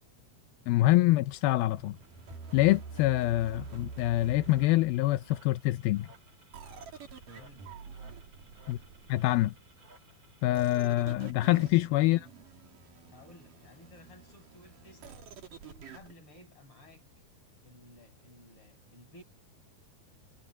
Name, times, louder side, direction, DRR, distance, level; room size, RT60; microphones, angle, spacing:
voice 1, 0.7-2.0 2.5-6.1 8.7-8.8 9.1-9.5 10.4-12.2, left 17 dB, 85° left, 2.6 m, -25 dB
sound 1, 1.3-11.3, right 2 dB, 20° right, 6.7 m, -61 dB
sound 2, 1.7-5.4 6.5-9.6 10.5-16.1, right 5 dB, 65° right, 4.7 m, -47 dB
voice 2, 7.3-7.6 10.7-12.3 13.1-15.3 15.6-17.0 17.6-19.2, left 2 dB, 35° left, 7.6 m, -56 dB
omnidirectional pair, 4.2 m